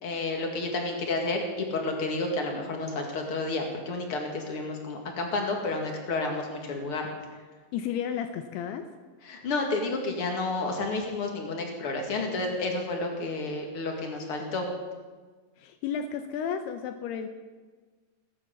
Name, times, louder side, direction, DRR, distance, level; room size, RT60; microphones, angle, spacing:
voice 1, 0.0-7.1 9.2-14.7, left 3 dB, 45° left, 2 dB, 1.8 m, -30 dB
voice 2, 7.7-8.9 15.6-17.3, left 8 dB, 80° left, 8 dB, 2.4 m, -32 dB
18.5 x 10.0 x 7.2 m, 1.4 s
omnidirectional pair, 5.5 m